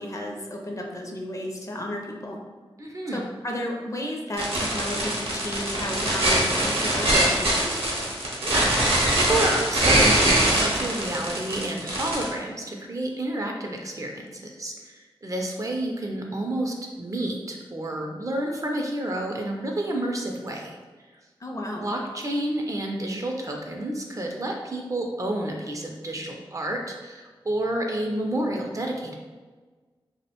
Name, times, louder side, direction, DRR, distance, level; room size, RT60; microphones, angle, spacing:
voice 1, 0.0-2.4 3.1-7.7 21.4-21.9, left 1 dB, 35° left, 0 dB, 0.4 m, -33 dB
voice 2, 2.8-3.2 8.4-20.8 21.8-29.2, right 1 dB, 35° right, 1 dB, 0.4 m, -30 dB
sound 1, 4.4-12.3, right 1 dB, 80° right, 0.7 m, -22 dB
2.3 x 2.1 x 2.8 m, 1.3 s
wide cardioid pair, 55°, 9 cm